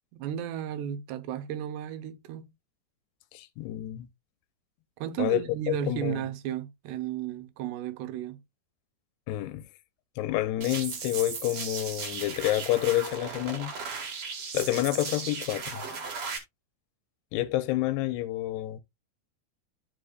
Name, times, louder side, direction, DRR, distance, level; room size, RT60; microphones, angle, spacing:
voice 1, 0.1-2.5 5.0-8.4, right 10 dB, 90° right, 3.0 m, -34 dB
voice 2, 3.3-4.1 5.2-5.4 5.7-6.2 9.3-9.6 10.2-13.7 14.5-15.9 17.3-18.8, left 16 dB, 85° left, 2.7 m, -28 dB
sound 1, 10.6-16.4, right 5 dB, 50° right, 2.0 m, -36 dB
12.5 x 5.0 x 2.3 m
omnidirectional pair, 4.7 m